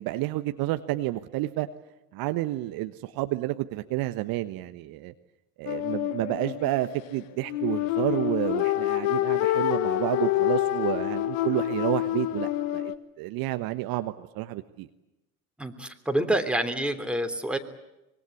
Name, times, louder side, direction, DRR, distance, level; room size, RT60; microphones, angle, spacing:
voice 1, 0.0-1.7 2.1-5.1 5.6-14.9, right 17 dB, 50° right, 10 dB, 1.2 m, -30 dB
sound 1, 5.7-13.0, left 14 dB, 65° left, 1.6 m, -27 dB
voice 2, 15.6-17.6, right 1 dB, ahead, 5 dB, 3.2 m, -27 dB
25.0 x 23.0 x 8.5 m, 0.93 s
figure-of-eight pair, 65°, 44 cm